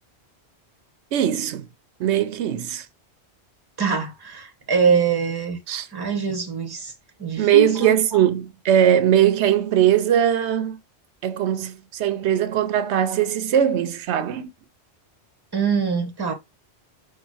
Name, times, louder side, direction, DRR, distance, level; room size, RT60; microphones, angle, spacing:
voice 1, 1.1-1.7 2.0-2.9 5.7-5.9 7.4-10.8 11.2-14.5, right 10 dB, 90° right, 0.9 m, -20 dB
voice 2, 3.8-5.6 5.9-6.9 7.2-8.2 15.5-16.3, right 5 dB, 25° right, 0.9 m, -23 dB
4.0 x 2.3 x 4.7 m
omnidirectional pair, 1.1 m